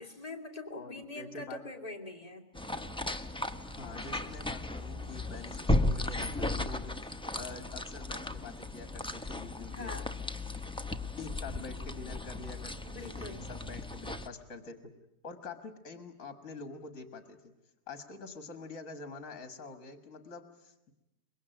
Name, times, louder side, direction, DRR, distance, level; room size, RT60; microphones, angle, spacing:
voice 1, 0.0-2.5 9.7-10.1 12.9-13.5, left 2 dB, 25° left, 2 dB, 2.6 m, -43 dB
voice 2, 0.7-1.6 3.6-9.9 11.2-12.8 13.0-14.9 15.2-17.5 17.9-20.9, left 4 dB, 60° left, 9 dB, 2.1 m, -46 dB
sound 1, 2.5-14.3, left 2 dB, 5° left, 0.8 m, -35 dB
24.5 x 22.0 x 9.1 m, 0.89 s
omnidirectional pair, 1.6 m